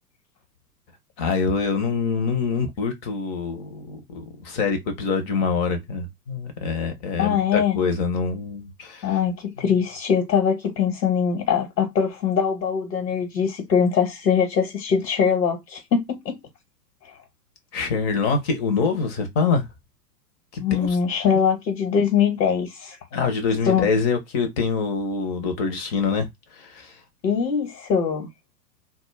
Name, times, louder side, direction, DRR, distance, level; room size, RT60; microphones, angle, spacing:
voice 1, 1.2-9.1 17.7-19.6 20.5-21.0 23.1-26.3 26.6-26.9, left 4 dB, 25° left, 0.5 m, -25 dB
voice 2, 7.2-7.8 9.0-16.4 20.6-23.0 23.6-23.9 27.2-28.3, left 7 dB, 80° left, 1.0 m, -22 dB
2.2 x 2.1 x 3.1 m
hypercardioid pair, 110°, 50 cm